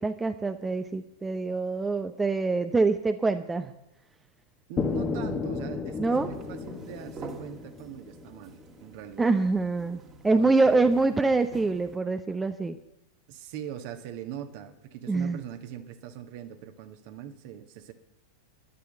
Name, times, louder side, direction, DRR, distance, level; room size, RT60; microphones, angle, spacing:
voice 1, 0.0-3.7 6.0-6.3 9.2-10.0 10.2-12.8 15.1-15.4, right 3 dB, 10° right, 8 dB, 0.7 m, -25 dB
voice 2, 4.7-9.3 10.3-11.0 13.3-17.9, right 10 dB, 45° right, 7 dB, 1.6 m, -41 dB
sound 1, 4.8-8.7, left 4 dB, 20° left, 1.2 m, -33 dB
sound 2, 6.1-12.0, right 3 dB, 30° right, 1.9 m, -46 dB
11.5 x 11.0 x 7.8 m, 0.87 s
figure-of-eight pair, 90°, 0 cm